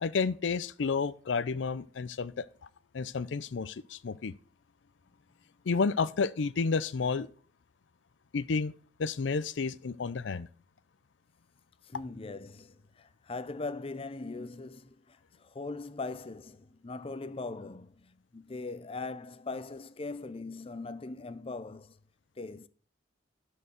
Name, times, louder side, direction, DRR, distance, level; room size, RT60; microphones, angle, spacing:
voice 1, 0.0-2.5 2.9-4.3 5.7-7.3 8.3-8.7 9.0-10.5, left 4 dB, 75° left, 0.5 m, -31 dB
voice 2, 11.8-21.9 22.4-22.7, left 3 dB, 30° left, 0.6 m, -40 dB
12.0 x 4.7 x 6.3 m
head